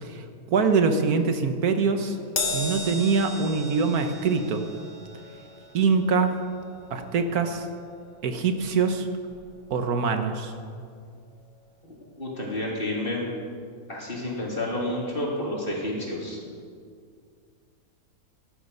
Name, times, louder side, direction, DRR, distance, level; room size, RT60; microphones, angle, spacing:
voice 1, 0.5-2.2 2.5-4.6 5.7-6.3 6.9-7.7 8.2-9.1 9.7-10.5, right 5 dB, 80° right, 7 dB, 1.6 m, -24 dB
Crash cymbal, 2.4-9.0 9.3-9.6 10.6-10.7, left 2 dB, 65° left, 2.0 m, -36 dB
voice 2, 12.2-13.2 13.9-16.4, left 1 dB, 35° left, -3 dB, 3.2 m, -30 dB
18.5 x 11.5 x 5.5 m, 2.2 s
omnidirectional pair, 1.6 m